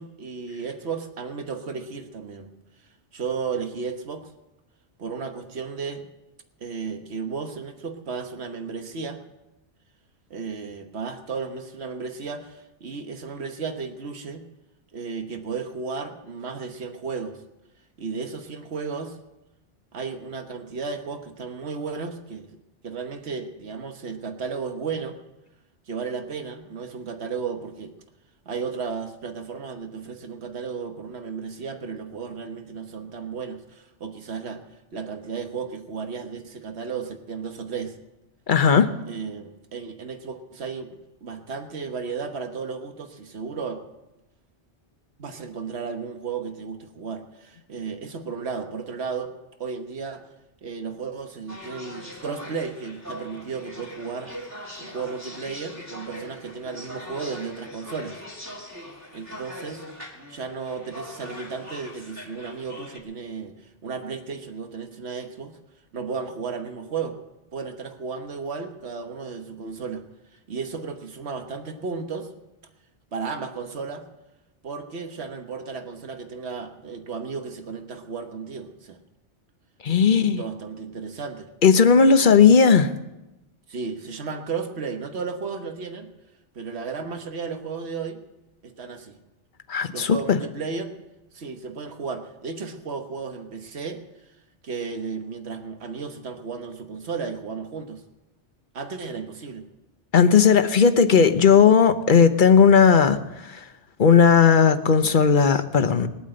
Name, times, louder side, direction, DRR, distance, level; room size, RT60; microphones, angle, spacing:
voice 1, 0.0-2.5 3.1-4.3 5.0-6.1 6.6-9.2 10.3-14.4 14.9-17.4 18.0-19.2 19.9-22.5 22.8-25.2 25.9-27.9 28.4-34.6 34.9-38.0 39.1-43.8 45.2-49.3 49.6-50.2 50.6-54.5 54.8-58.2 59.1-59.8 60.3-65.6 65.9-67.2 67.5-70.0 70.3-72.3 73.1-74.1 74.6-79.0 79.9-81.5 83.7-86.1 86.5-88.2 88.6-89.2 89.9-90.9 91.3-94.0 94.3-94.4 94.6-98.0 98.7-99.6, right 5 dB, 65° right, 6 dB, 1.6 m, -34 dB
voice 2, 38.5-38.9 79.8-80.4 81.6-82.9 89.7-90.4 100.1-103.6 104.0-106.1, left 6 dB, 50° left, 10 dB, 1.0 m, -16 dB
sound 1, 51.5-63.0, equal, 15° right, 2.7 m, -41 dB
20.5 x 8.7 x 7.8 m, 0.99 s
omnidirectional pair, 1.2 m